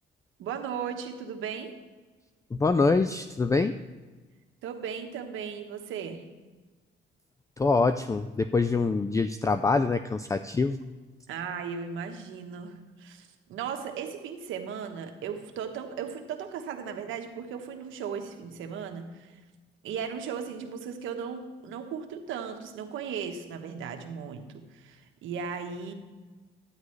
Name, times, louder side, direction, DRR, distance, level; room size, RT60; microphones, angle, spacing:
voice 1, 0.4-1.7 4.6-6.2 11.3-19.4 19.8-25.9, right 7 dB, 85° right, 5 dB, 1.1 m, -36 dB
voice 2, 2.5-3.7 7.6-10.8, left 4 dB, 15° left, 10 dB, 0.4 m, -25 dB
12.0 x 9.6 x 3.2 m, 1.3 s
cardioid pair, 90°, 20 cm